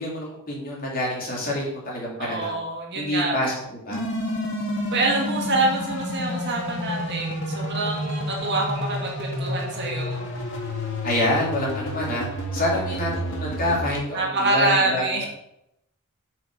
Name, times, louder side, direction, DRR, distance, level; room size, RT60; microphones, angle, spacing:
voice 1, 0.0-2.5 2.9-4.0 11.0-15.3, left 1 dB, 40° left, -4 dB, 3.3 m, -27 dB
voice 2, 2.2-3.4 4.9-10.3 14.1-15.3, right 2 dB, 55° right, 0 dB, 2.1 m, -26 dB
sound 1, 3.9-13.9, left 1 dB, 60° left, 2.2 m, -30 dB
7.7 x 5.8 x 5.7 m, 0.80 s
head